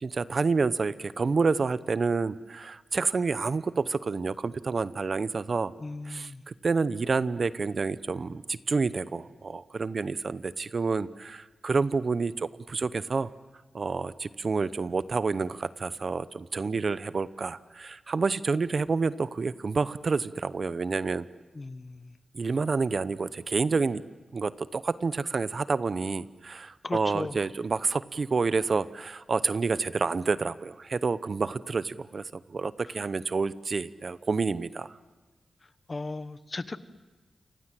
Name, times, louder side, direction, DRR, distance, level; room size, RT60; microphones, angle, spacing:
voice 1, 0.0-5.7 6.1-13.3 13.7-21.3 22.3-24.0 24.3-34.9, right 4 dB, 55° right, 16 dB, 0.8 m, -29 dB
voice 2, 5.8-6.4 21.5-22.1 26.8-27.5 32.9-33.0 35.9-36.8, left 3 dB, 40° left, 13 dB, 1.2 m, -37 dB
29.0 x 26.0 x 7.6 m, 1.2 s
cardioid pair, 65°, 0 cm